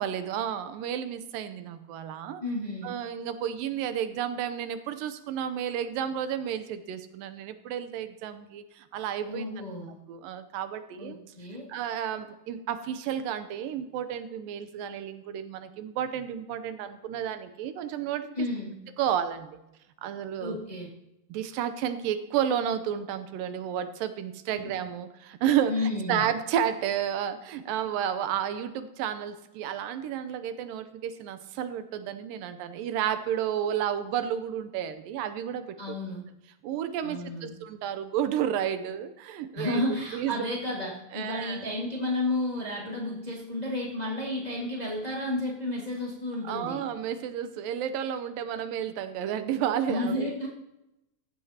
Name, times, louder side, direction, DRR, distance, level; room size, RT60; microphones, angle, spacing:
voice 1, 0.0-2.4 2.8-9.5 10.1-11.2 11.7-18.5 19.0-19.6 20.0-20.6 21.3-25.8 26.1-36.0 36.6-39.8 40.1-40.4 41.1-41.6 46.4-50.5, right 9 dB, 75° right, 10 dB, 2.3 m, -31 dB
voice 2, 2.4-3.0 9.2-10.0 11.0-11.7 18.4-18.8 20.4-20.9 24.5-24.7 25.7-26.2 35.8-36.2 37.0-37.6 39.5-46.8 49.9-50.5, left 2 dB, 70° left, -4 dB, 0.4 m, -32 dB
15.5 x 14.0 x 2.9 m, 0.91 s
omnidirectional pair, 4.4 m